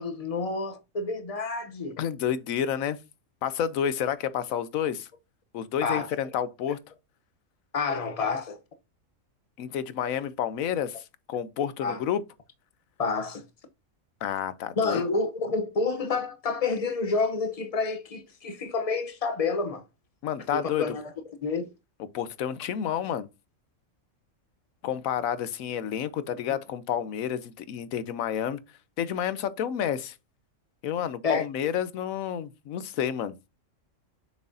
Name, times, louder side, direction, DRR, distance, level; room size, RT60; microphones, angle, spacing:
voice 1, 0.0-2.0 5.8-6.1 7.7-8.6 11.8-12.0 13.0-13.4 14.8-19.8 20.5-21.1 21.4-21.7 31.2-31.5, left 4 dB, 35° left, 0.7 m, -29 dB
voice 2, 2.0-3.0 3.4-5.1 5.5-6.8 9.6-12.2 14.2-15.0 20.2-21.0 22.1-23.3 24.8-28.6 29.0-30.2 30.8-33.4, left 9 dB, 85° left, 1.1 m, -30 dB
7.0 x 6.2 x 2.6 m
omnidirectional pair, 1.4 m